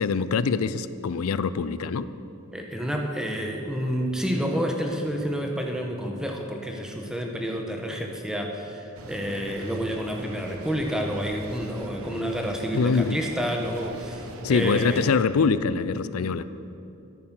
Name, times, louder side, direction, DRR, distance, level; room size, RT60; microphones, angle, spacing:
voice 1, 0.0-2.1 12.7-13.2 14.4-16.4, left 5 dB, 85° left, 14 dB, 0.5 m, -24 dB
voice 2, 2.5-15.1, equal, 5° right, 1 dB, 1.2 m, -29 dB
sound 1, 8.9-15.2, right 1 dB, 85° right, 1.1 m, -41 dB
14.0 x 8.7 x 6.1 m, 2.7 s
head